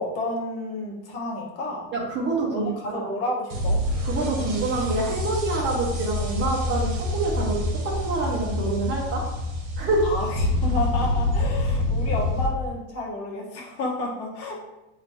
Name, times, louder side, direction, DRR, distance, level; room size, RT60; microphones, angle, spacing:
voice 1, 0.0-1.9 2.5-3.8 10.0-14.5, left 2 dB, 45° left, -2 dB, 1.2 m, -30 dB
voice 2, 1.9-3.1 4.0-9.3 9.8-10.1, right 3 dB, 30° right, -2 dB, 1.1 m, -26 dB
sound 1, 3.5-12.5, left 2 dB, 60° right, 1.3 m, -26 dB
6.0 x 3.0 x 2.8 m, 0.96 s
cardioid pair, 165°, 34 cm